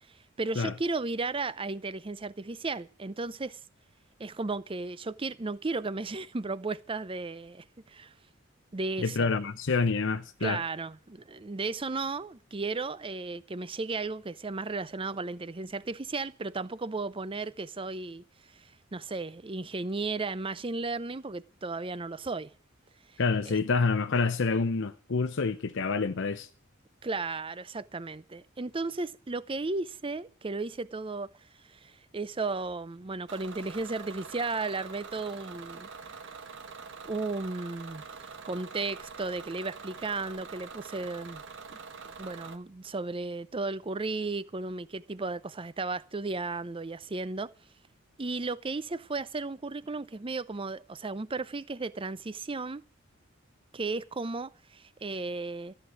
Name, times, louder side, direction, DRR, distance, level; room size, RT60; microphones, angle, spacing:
voice 1, 0.4-3.6 4.2-8.1 8.7-9.3 10.4-18.2 18.5-22.5 23.5-23.6 27.0-31.3 31.7-35.9 37.0-38.2 38.4-41.4 42.2-47.5 48.2-52.8 53.7-55.7, right 3 dB, 25° right, 0.6 m, -34 dB
voice 2, 9.0-10.6 23.2-26.5, left 4 dB, 65° left, 0.7 m, -27 dB
Bus / Engine, 33.3-42.6, right 5 dB, 65° right, 1.3 m, -45 dB
14.0 x 8.0 x 9.2 m
head